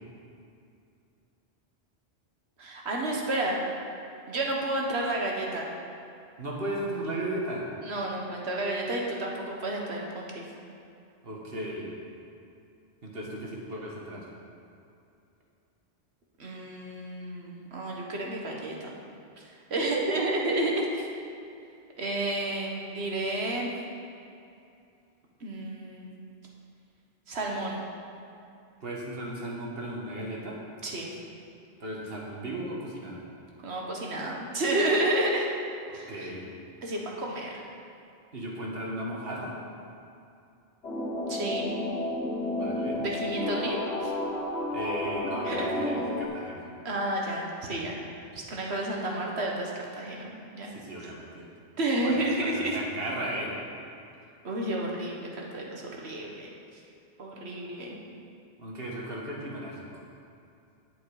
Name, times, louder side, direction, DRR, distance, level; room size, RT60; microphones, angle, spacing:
voice 1, 2.6-3.6 4.3-5.7 7.8-10.5 16.4-18.9 19.7-21.1 22.0-23.7 25.4-26.1 27.3-27.8 30.8-31.1 33.6-35.5 35.9-36.3 36.8-37.6 41.3-41.7 43.0-44.1 45.4-45.7 46.8-48.0 48.3-50.7 51.8-52.8 54.4-56.5 57.2-58.0, right 1 dB, 80° right, -1 dB, 1.6 m, -31 dB
voice 2, 6.4-7.6 11.2-11.9 13.0-14.2 28.8-30.6 31.8-33.2 35.9-36.5 38.3-39.6 42.5-43.0 44.7-46.7 50.7-51.4 52.0-53.6 58.6-59.8, right 1 dB, 65° right, -3 dB, 1.9 m, -36 dB
sound 1, 40.8-46.3, left 1 dB, 85° left, 1.7 m, -31 dB
10.0 x 8.1 x 4.9 m, 2.5 s
omnidirectional pair, 1.1 m